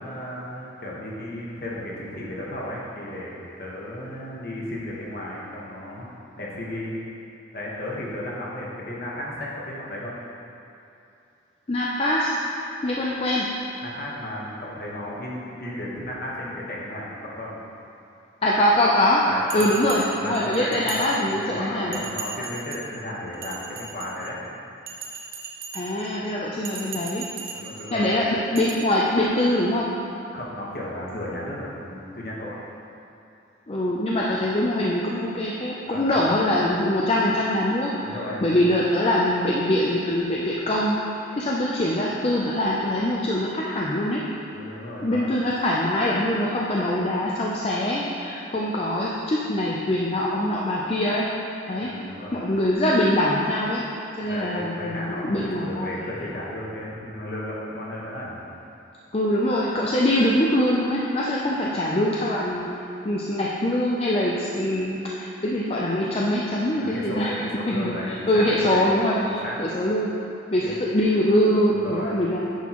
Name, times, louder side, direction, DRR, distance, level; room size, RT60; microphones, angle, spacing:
voice 1, 0.0-6.1 6.4-6.9 7.5-10.2 13.8-17.6 19.2-19.8 20.2-24.4 27.5-28.1 30.3-32.6 35.9-36.3 38.0-38.7 44.5-45.3 51.8-52.4 54.2-58.4 66.7-68.9 69.4-69.6 70.6-70.8 71.7-72.1, left 1 dB, 50° left, -5 dB, 1.3 m, -34 dB
voice 2, 11.7-12.3 12.8-13.5 18.4-19.2 19.5-22.0 25.7-27.3 27.9-29.9 33.7-41.0 41.3-44.2 45.0-51.2 51.7-51.9 52.3-53.8 54.2-55.9 59.1-62.7 63.0-67.4 67.7-70.1 70.5-72.5, left 1 dB, 30° left, -4 dB, 0.5 m, -23 dB
Bell, 19.5-21.5 21.9-22.9 23.3-24.4 24.9-26.1 26.6-27.9 28.5-28.7, right 5 dB, 50° right, 0.9 m, -37 dB
9.4 x 6.1 x 3.0 m, 2.7 s
head